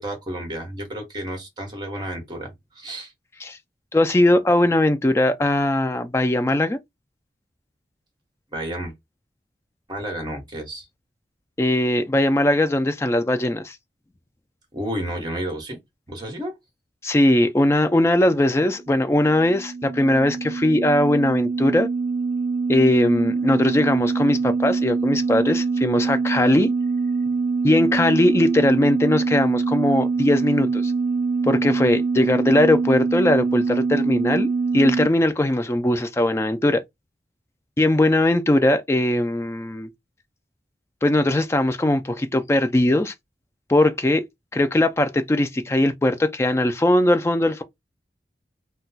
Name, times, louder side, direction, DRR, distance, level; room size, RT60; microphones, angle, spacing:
voice 1, 0.0-3.1 8.5-8.9 9.9-10.9 14.7-15.8 16.1-16.5, right 1 dB, 25° right, 1.0 m, -31 dB
voice 2, 3.9-6.8 11.6-13.8 17.0-21.9 22.7-26.7 27.6-30.9 31.4-34.5 34.7-36.8 37.8-39.9 41.0-43.1 43.7-44.2 44.5-47.6, left 1 dB, 15° left, 0.3 m, -20 dB
sound 1, 18.9-35.1, right 4 dB, 85° right, 0.3 m, -24 dB
2.2 x 2.2 x 3.9 m
head